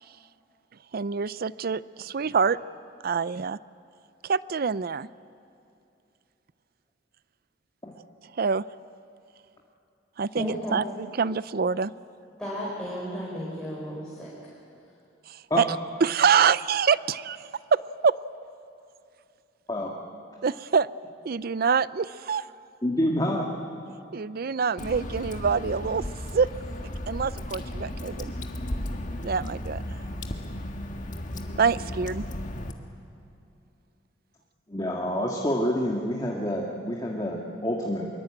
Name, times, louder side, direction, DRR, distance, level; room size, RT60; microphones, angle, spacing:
voice 1, 0.9-2.6 3.0-3.6 4.2-5.1 8.4-8.6 10.2-10.8 11.2-11.9 15.3-15.6 16.0-18.2 20.4-20.9 21.2-22.4 24.1-26.0 26.3-26.5 27.1-28.3 29.2-30.0 31.6-32.3, right 6 dB, 55° right, 18 dB, 0.5 m, -25 dB
voice 2, 10.4-10.8 12.4-14.5, equal, 5° left, -6 dB, 5.0 m, -34 dB
voice 3, 22.8-23.5 34.7-38.1, left 1 dB, 20° left, -2 dB, 2.0 m, -27 dB
Water / Drip, 24.8-32.7, left 1 dB, 45° left, 1.7 m, -35 dB
24.0 x 23.0 x 8.9 m, 2.7 s
head